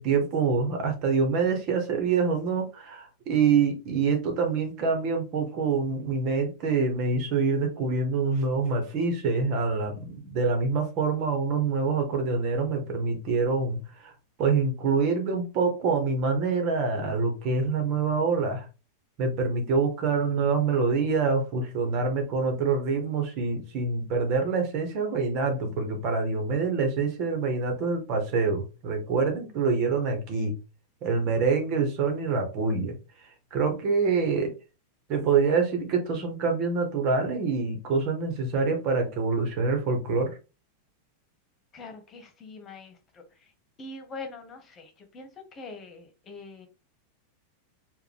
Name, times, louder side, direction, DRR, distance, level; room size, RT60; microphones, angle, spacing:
voice 1, 0.0-14.1 14.4-18.6 19.2-30.5 31.0-32.9 33.5-34.5 35.1-40.3, right 4 dB, 50° right, 5 dB, 1.5 m, -26 dB
voice 2, 41.7-43.2 43.8-46.7, left 3 dB, 30° left, 5 dB, 1.4 m, -43 dB
4.8 x 2.6 x 3.5 m, 0.30 s
hypercardioid pair, 120°, 0 cm